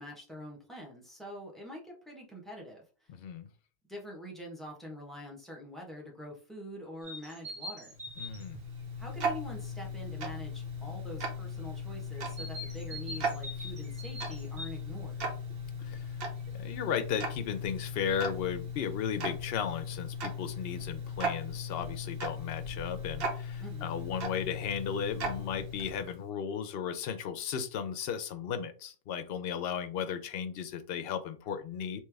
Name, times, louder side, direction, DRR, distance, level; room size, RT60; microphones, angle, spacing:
voice 1, 0.0-3.1 3.9-7.9 9.0-15.3 23.6-24.0, equal, ahead, -2 dB, 1.1 m, -45 dB
voice 2, 3.1-3.5 8.2-8.6 15.8-16.1 16.5-32.0, left 7 dB, 70° left, 9 dB, 0.8 m, -35 dB
sound 1, 7.0-8.5 12.2-14.8, equal, 35° right, 1.1 m, -43 dB
Tick-tock, 7.9-26.2, left 1 dB, 65° right, 1.0 m, -38 dB
3.3 x 3.0 x 3.4 m, 0.37 s
omnidirectional pair, 1.1 m